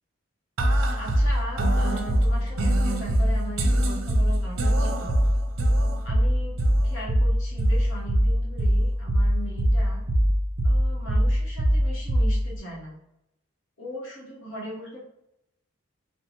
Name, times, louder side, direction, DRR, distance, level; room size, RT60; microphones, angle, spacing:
sound 1, 0.6-12.6, equal, 75° right, 0.5 m, -23 dB
voice 1, 1.0-5.2 6.0-10.0 10.6-13.0 13.8-15.0, equal, 70° left, -4 dB, 1.1 m, -39 dB
4.4 x 2.1 x 2.8 m, 0.83 s
head